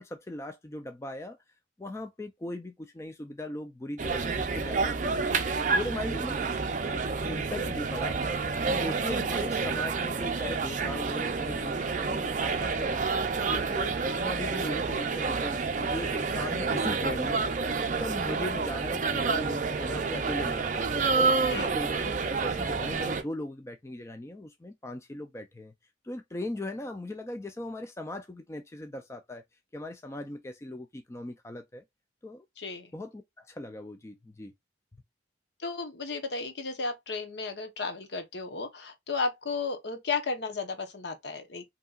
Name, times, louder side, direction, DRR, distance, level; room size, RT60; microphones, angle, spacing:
voice 1, 0.0-1.4 1.8-6.6 6.8-8.2 8.7-13.0 13.4-20.9 21.1-25.7 26.0-29.4 29.7-31.8 32.2-32.5 32.9-34.5, left 1 dB, 15° left, 0.3 m, -39 dB
sound 1, 4.0-23.2, right 4 dB, 40° right, 0.5 m, -29 dB
voice 2, 32.6-32.9 35.6-41.6, left 4 dB, 60° left, 0.9 m, -34 dB
5.3 x 2.8 x 2.3 m
head